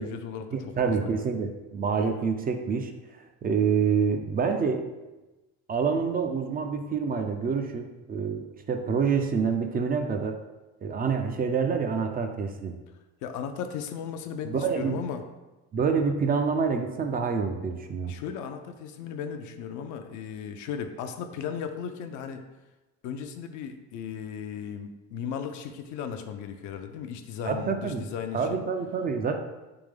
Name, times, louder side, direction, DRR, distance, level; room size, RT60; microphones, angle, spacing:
voice 1, 0.0-1.2 13.2-15.2 18.1-22.4 23.0-28.6, left 7 dB, 65° left, 7 dB, 0.5 m, -36 dB
voice 2, 0.5-4.9 5.7-10.4 10.8-12.8 14.5-15.0 15.7-18.1 27.4-28.1 28.3-29.4, right 5 dB, 30° right, 6 dB, 0.4 m, -27 dB
3.5 x 3.1 x 3.4 m, 1.1 s
supercardioid pair, 90°, 32 cm